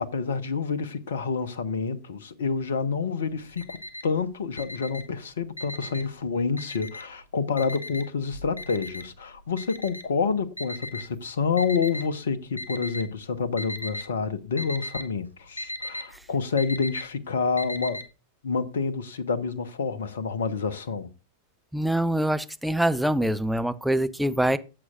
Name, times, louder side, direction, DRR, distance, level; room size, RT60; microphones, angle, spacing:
voice 1, 0.0-18.0 18.4-21.1, left 5 dB, 65° left, 1.1 m, -28 dB
Alarm, 3.2-4.2 4.5-6.2 6.6-7.2 7.6-12.0 12.6-13.2 13.5-14.1 14.4-18.0, left 1 dB, 85° left, 0.8 m, -37 dB
voice 2, 21.7-24.6, right 1 dB, ahead, 0.7 m, -24 dB
15.0 x 7.9 x 2.5 m
figure-of-eight pair, 90°, 0 cm